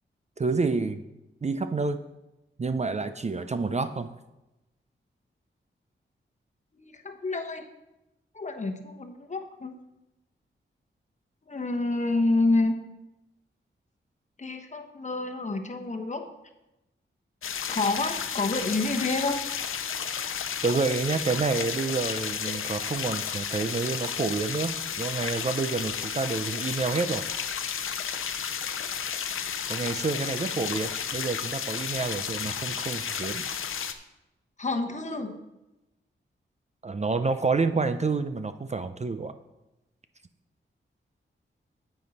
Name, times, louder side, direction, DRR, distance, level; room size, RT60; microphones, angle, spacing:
voice 1, 0.4-1.0 1.4-2.0 2.6-4.1 20.6-27.2 29.7-33.4 36.8-39.3, right 4 dB, 35° right, 10 dB, 0.5 m, -28 dB
voice 2, 6.7-7.7 8.3-9.7 11.4-12.7 14.4-16.2 17.6-19.4 34.6-35.4, left 2 dB, 35° left, 5 dB, 1.1 m, -28 dB
sound 1, 17.4-33.9, left 7 dB, 85° left, 0.6 m, -32 dB
9.1 x 7.8 x 4.2 m, 0.95 s
cardioid pair, 75°, 21 cm